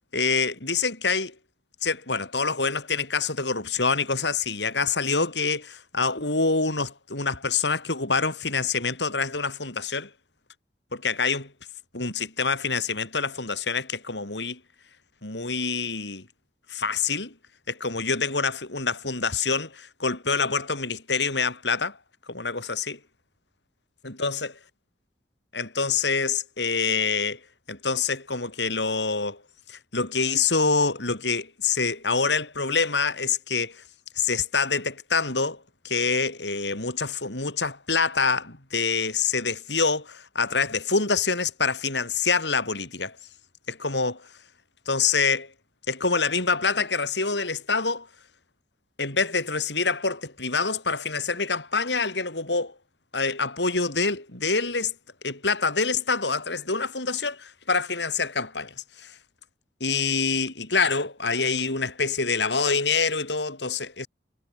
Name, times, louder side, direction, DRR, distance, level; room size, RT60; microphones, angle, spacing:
voice 1, 0.1-1.3 1.8-10.1 10.9-11.5 11.9-14.6 15.2-16.3 16.7-17.3 17.7-22.0 22.3-23.0 24.0-24.5 25.5-27.4 27.7-29.4 29.7-33.8 34.2-43.2 43.7-44.3 44.9-45.5 45.9-48.1 49.0-52.7 53.1-54.9 55.2-59.1 59.8-64.1, left 4 dB, 90° left, 5.6 m, -26 dB
head